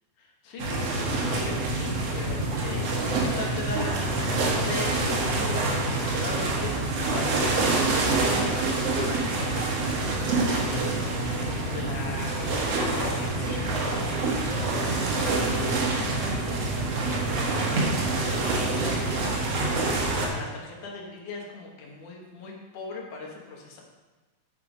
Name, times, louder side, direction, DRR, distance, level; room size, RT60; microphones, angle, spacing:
voice 1, 0.2-23.8, left 3 dB, 65° left, -1 dB, 2.7 m, -40 dB
sound 1, 0.6-20.3, right 2 dB, 55° right, 1.9 m, -26 dB
8.4 x 6.8 x 5.1 m, 1.2 s
omnidirectional pair, 4.2 m